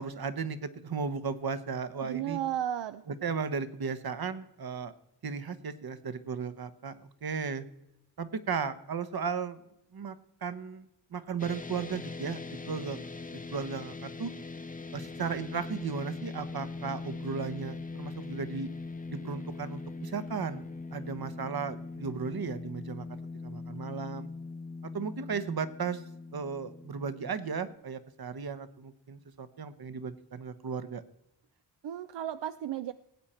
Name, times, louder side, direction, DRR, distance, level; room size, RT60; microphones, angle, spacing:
voice 1, 0.0-2.4 3.1-4.9 5.2-7.6 8.2-9.6 9.9-10.1 10.4-10.8 11.1-13.0 13.3-14.3 14.9-18.7 19.1-20.6 20.9-24.3 24.8-26.0 26.3-31.0, right 5 dB, 60° right, 13 dB, 1.1 m, -35 dB
voice 2, 2.0-3.0 31.8-32.9, right 11 dB, 80° right, 12 dB, 0.6 m, -34 dB
sound 1, 11.4-27.8, left 3 dB, 20° left, 0.8 m, -41 dB
18.5 x 8.6 x 4.4 m, 0.82 s
wide cardioid pair, 85°, 42 cm